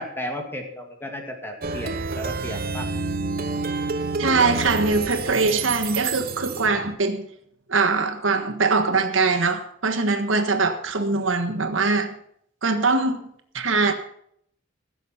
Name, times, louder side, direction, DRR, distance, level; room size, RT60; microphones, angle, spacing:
voice 1, 0.0-2.9, equal, 10° left, 2 dB, 2.1 m, -34 dB
Plucked string instrument, 1.6-7.0, right 3 dB, 50° right, 0.9 m, -29 dB
voice 2, 4.2-7.2 7.7-12.1 12.6-13.3 13.5-13.9, right 4 dB, 90° right, 6 dB, 1.5 m, -22 dB
16.0 x 7.2 x 5.9 m, 0.68 s
head